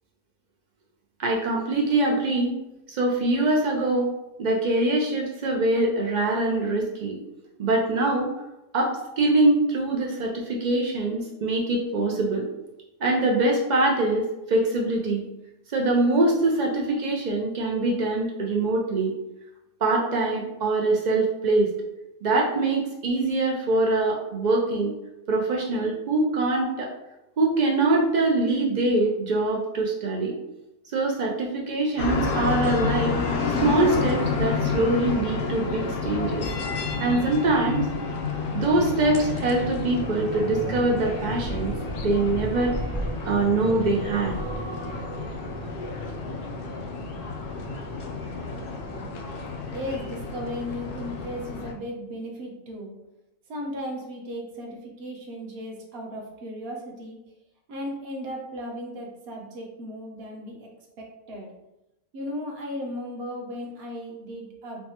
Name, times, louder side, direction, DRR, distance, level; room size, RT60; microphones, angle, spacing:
voice 1, 1.2-2.5 2.9-4.1 4.4-7.2 7.6-8.3 8.7-12.5 13.0-15.3 15.7-19.1 19.8-21.7 22.2-24.9 25.3-26.9 27.4-30.3 30.9-33.1 33.6-36.4 37.0-37.9 38.5-41.7 42.0-42.7 43.3-44.4, right 2 dB, 75° right, -1 dB, 0.4 m, -23 dB
sound 1, 32.0-51.7, left 4 dB, 60° left, 0.6 m, -30 dB
sound 2, 38.1-47.4 47.8-48.1, right 1 dB, 20° right, 0.6 m, -38 dB
voice 2, 49.7-52.9 53.5-57.2 57.7-60.7 61.0-61.5 62.1-64.8, equal, 55° right, 0 dB, 0.9 m, -36 dB
4.5 x 2.1 x 2.8 m, 0.92 s
omnidirectional pair, 1.4 m